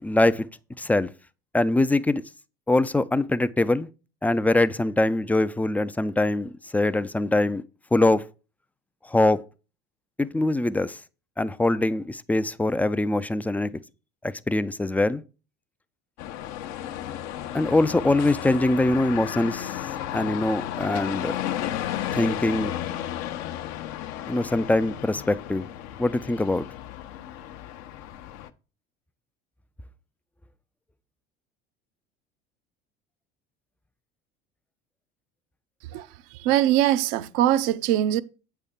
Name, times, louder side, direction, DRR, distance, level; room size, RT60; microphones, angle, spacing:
voice 1, 0.0-0.5 0.8-1.1 1.5-2.2 2.7-3.9 4.2-7.6 7.9-8.2 9.0-9.4 10.2-11.0 11.4-13.7 14.2-15.2 17.5-19.7 20.1-21.4 22.1-22.7 24.3-25.7 26.0-26.6, left 2 dB, 5° left, 0.3 m, -23 dB
sound 1, 16.2-28.5, left 11 dB, 60° left, 0.7 m, -33 dB
voice 2, 36.4-38.2, right 12 dB, 60° right, 0.6 m, -22 dB
8.1 x 5.6 x 3.6 m
hypercardioid pair, 70°, 31 cm